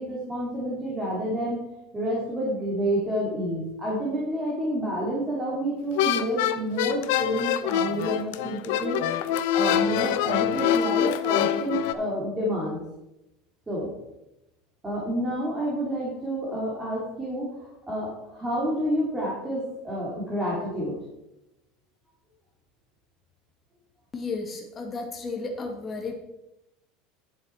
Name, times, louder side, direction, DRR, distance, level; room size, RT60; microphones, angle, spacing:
voice 1, 0.0-1.6 1.9-9.0 9.3-12.8 13.7-13.9 14.8-21.0, equal, 10° right, -6 dB, 2.3 m, -29 dB
sound 1, 5.9-11.9, left 10 dB, 75° left, 0.6 m, -25 dB
voice 2, 24.1-26.1, left 3 dB, 20° left, 3 dB, 1.5 m, -33 dB
10.0 x 7.5 x 4.4 m, 0.92 s
cardioid pair, 165°, 0 cm